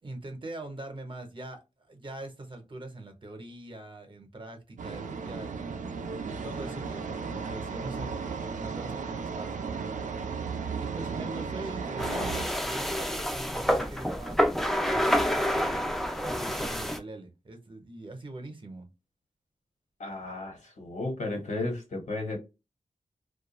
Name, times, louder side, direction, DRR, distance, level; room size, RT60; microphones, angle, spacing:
voice 1, 0.0-10.4 10.8-14.6 15.3-18.9, right 2 dB, 40° right, 0.7 m, -43 dB
sound 1, 4.8-12.4, right 5 dB, 80° right, 0.4 m, -35 dB
sound 2, 12.0-17.0, equal, ahead, 0.4 m, -28 dB
voice 2, 20.0-22.4, left 2 dB, 75° left, 1.2 m, -34 dB
2.3 x 2.2 x 2.9 m
wide cardioid pair, 110°, 13 cm